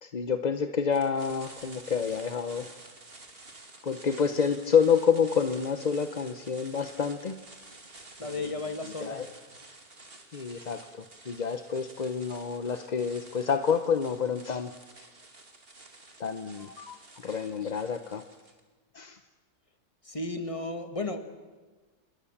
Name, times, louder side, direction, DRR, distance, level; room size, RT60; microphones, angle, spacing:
voice 1, 0.0-2.7 3.8-7.4 8.3-8.6 9.0-9.3 10.3-14.7 16.2-17.0 17.2-18.2 18.9-19.2, left 6 dB, 35° left, 9 dB, 0.8 m, -28 dB
sound 1, 0.9-18.6, right 2 dB, 35° right, 2.7 m, -51 dB
voice 2, 8.2-9.3 20.0-21.3, left 2 dB, 20° left, 8 dB, 1.9 m, -34 dB
27.5 x 21.5 x 7.3 m, 1.3 s
omnidirectional pair, 1.7 m